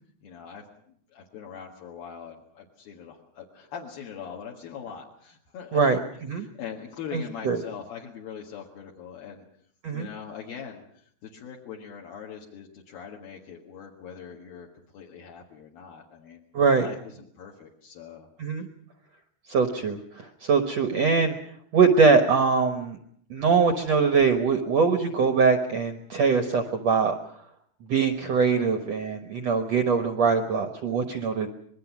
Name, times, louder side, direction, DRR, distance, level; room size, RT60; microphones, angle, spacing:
voice 1, 0.2-0.6 1.1-6.0 6.3-9.4 9.9-14.7 14.9-16.4 16.8-18.3, left 7 dB, 65° left, -1 dB, 3.4 m, -42 dB
voice 2, 5.7-6.5 7.1-7.6 9.8-10.1 16.5-16.9 18.4-18.7 19.5-21.3 21.7-23.0 23.3-27.1 27.9-31.5, right 5 dB, 70° right, 7 dB, 1.6 m, -22 dB
26.0 x 21.0 x 6.0 m, 0.64 s
omnidirectional pair, 4.8 m